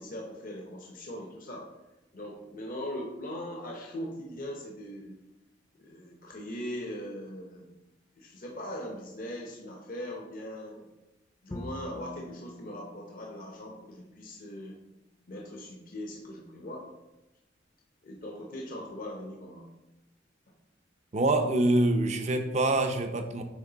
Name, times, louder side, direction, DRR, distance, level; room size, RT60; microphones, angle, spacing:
voice 1, 0.0-1.7 2.1-5.2 5.7-7.7 8.2-10.9 11.4-14.8 15.3-16.9 18.0-19.7, equal, 50° left, 0 dB, 0.7 m, -40 dB
Bowed string instrument, 11.5-14.6, left 1 dB, 15° left, 0.4 m, -46 dB
voice 2, 21.1-23.4, right 2 dB, 40° right, 6 dB, 0.6 m, -25 dB
8.1 x 3.2 x 3.8 m, 1.0 s
head